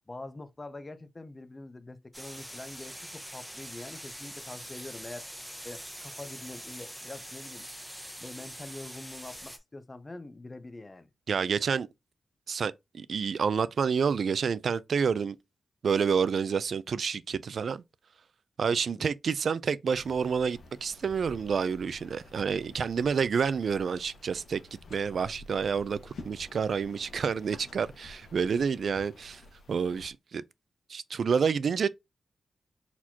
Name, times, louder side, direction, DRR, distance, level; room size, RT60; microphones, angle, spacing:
voice 1, 0.0-5.3 5.6-7.7 8.2-11.1 18.7-19.1, left 2 dB, 25° left, 0.6 m, -45 dB
sound 1, 2.1-9.6, equal, ahead, 0.9 m, -44 dB
voice 2, 11.3-11.9 12.5-15.4 15.8-17.8 18.6-24.6 24.9-29.4 29.7-30.4 30.9-31.9, right 6 dB, 65° right, 0.4 m, -29 dB
sound 2, 19.9-30.1, left 2 dB, 80° left, 1.3 m, -51 dB
4.4 x 4.2 x 2.7 m
wide cardioid pair, 120°, 0 cm